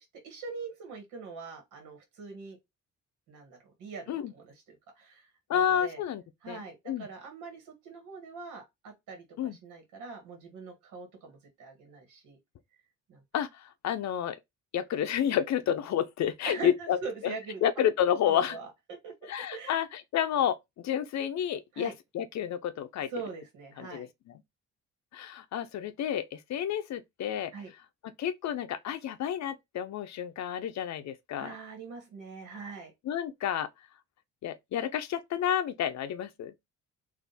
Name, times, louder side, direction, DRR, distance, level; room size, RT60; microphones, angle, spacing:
voice 1, 0.0-2.6 3.3-6.0 6.4-12.4 13.1-13.2 16.4-17.6 18.2-19.8 21.7-21.9 23.1-24.1 27.5-27.7 31.4-32.9, right 4 dB, 85° right, 1.6 m, -43 dB
voice 2, 5.5-7.1 9.4-9.6 13.3-13.5 13.8-14.4 14.7-17.3 17.6-18.6 19.3-23.1 23.8-24.1 25.1-27.5 28.2-31.5 33.1-33.7 34.4-36.5, left 9 dB, 65° left, 0.6 m, -30 dB
3.5 x 2.6 x 4.0 m
cardioid pair, 90°, 30 cm